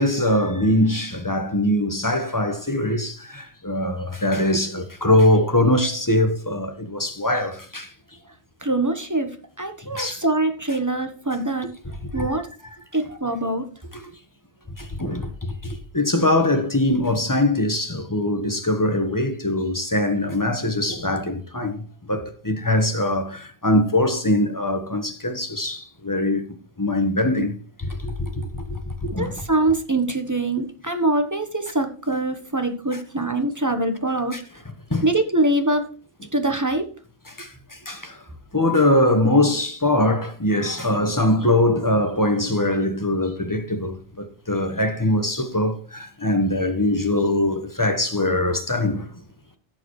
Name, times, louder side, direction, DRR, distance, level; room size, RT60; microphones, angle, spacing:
voice 1, 0.0-7.9 10.0-10.2 12.1-12.3 15.0-15.3 15.6-21.8 22.1-26.4 26.8-27.5 28.0-28.8 29.1-29.3 32.9-33.0 34.3-34.4 34.9-35.1 37.4-37.5 37.9-38.1 38.5-49.0, left 1 dB, 20° left, 1.3 m, -22 dB
voice 2, 8.6-9.3 9.6-11.7 12.1-12.5 12.9-13.7 29.2-34.4 35.0-35.9 36.3-36.9, right 2 dB, 20° right, 1.1 m, -23 dB
16.0 x 6.9 x 3.2 m
omnidirectional pair, 1.0 m